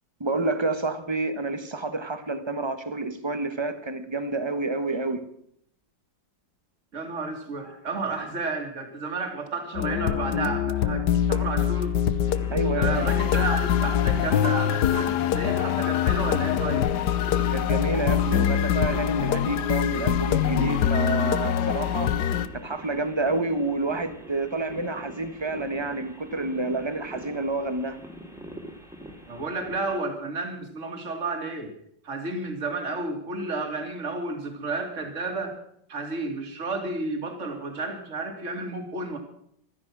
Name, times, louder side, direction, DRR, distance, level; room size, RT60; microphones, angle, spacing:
voice 1, 0.2-5.3 12.5-13.1 17.5-22.1 22.5-28.0, right 2 dB, 15° right, 1.0 m, -29 dB
voice 2, 6.9-12.0 12.7-16.9 29.3-31.7 32.0-35.6 35.9-39.2, right 3 dB, 40° right, 2.7 m, -32 dB
sound 1, 9.7-22.5, left 9 dB, 70° left, 1.3 m, -24 dB
sound 2, 12.2-30.0, equal, ahead, 2.3 m, -44 dB
15.5 x 13.5 x 6.1 m
omnidirectional pair, 2.0 m